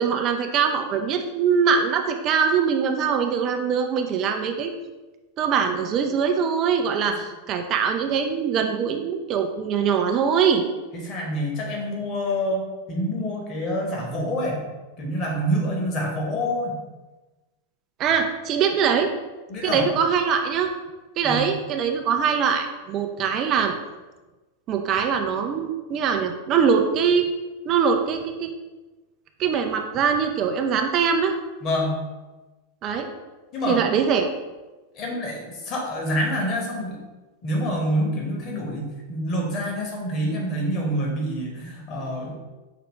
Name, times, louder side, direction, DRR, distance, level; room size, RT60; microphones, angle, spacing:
voice 1, 0.0-4.7 5.4-10.6 18.0-19.1 19.6-20.7 21.2-23.7 24.7-27.3 27.7-28.5 29.4-31.3 32.8-33.1 33.7-34.3, right 6 dB, 35° right, 5 dB, 0.4 m, -22 dB
voice 2, 10.9-12.6 12.9-14.6 15.0-16.8 19.5-19.9 21.2-21.5 31.6-32.0 33.5-33.8 34.9-37.0 37.4-42.4, equal, 35° left, -1 dB, 1.2 m, -27 dB
5.8 x 2.9 x 3.1 m, 1.2 s
figure-of-eight pair, 90°, 0 cm